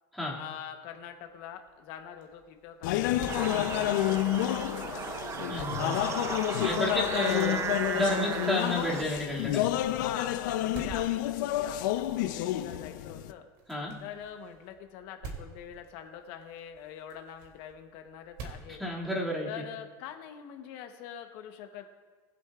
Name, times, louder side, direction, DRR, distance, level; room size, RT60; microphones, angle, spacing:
voice 1, 0.3-5.3 5.9-7.7 9.9-13.4 14.0-18.8 19.4-21.9, left 9 dB, 65° left, 5 dB, 1.0 m, -44 dB
sound 1, 0.9-19.6, right 4 dB, 65° right, 2.7 m, -51 dB
sound 2, 2.8-13.3, left 14 dB, 85° left, 0.6 m, -30 dB
sound 3, 3.3-9.0, right 6 dB, 30° right, 0.6 m, -35 dB
voice 2, 5.5-6.0 6.6-7.6 7.9-9.7 13.7-14.0 18.8-19.6, left 1 dB, ahead, -6 dB, 2.3 m, -31 dB
21.0 x 7.8 x 2.4 m, 1.4 s
supercardioid pair, 130°, 10 cm